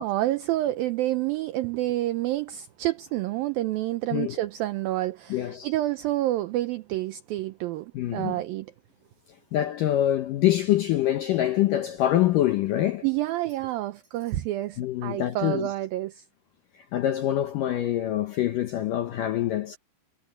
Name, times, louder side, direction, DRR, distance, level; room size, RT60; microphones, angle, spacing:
voice 1, 0.0-8.7 13.0-16.2, right 15 dB, 85° right, 2.0 m, -28 dB
voice 2, 5.3-5.7 7.9-8.4 9.3-13.1 14.8-15.7 16.7-19.8, left 12 dB, 75° left, 2.0 m, -25 dB
omnidirectional pair, 5.1 m